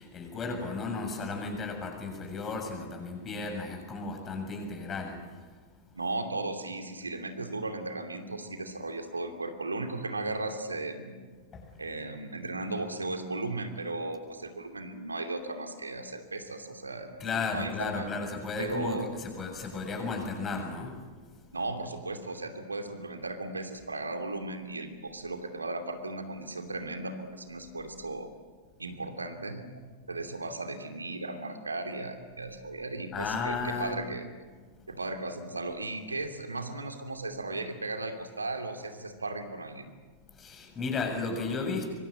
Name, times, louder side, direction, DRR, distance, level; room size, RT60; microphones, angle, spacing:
voice 1, 0.0-5.5 11.5-11.8 17.2-21.0 21.6-21.7 33.1-34.0 40.3-41.9, left 4 dB, 25° left, 4 dB, 7.1 m, -34 dB
voice 2, 5.9-11.2 11.8-17.1 17.5-18.1 18.6-19.1 21.5-28.3 28.8-29.7 30.1-34.2 34.9-39.9, right 2 dB, 80° right, 6 dB, 2.7 m, -36 dB
25.0 x 24.5 x 8.7 m, 1.5 s
figure-of-eight pair, 90°, 0 cm